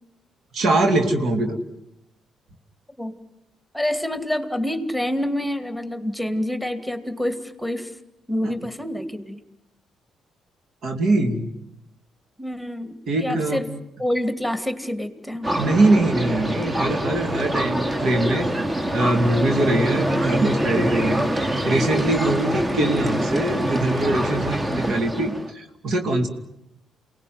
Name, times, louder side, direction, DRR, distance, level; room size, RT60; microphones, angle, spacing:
voice 1, 0.5-1.6 8.4-8.5 10.8-11.4 13.1-13.6 15.6-18.5 18.9-21.3 21.6-26.3, right 2 dB, 65° right, 5 dB, 3.0 m, -22 dB
voice 2, 3.7-7.9 8.3-9.4 12.4-13.7 14.0-15.5, left 1 dB, ahead, 9 dB, 2.7 m, -27 dB
sound 1, 15.4-25.5, right 1 dB, 30° right, 2.5 m, -25 dB
28.5 x 19.0 x 9.6 m, 0.86 s
hypercardioid pair, 50°, 0 cm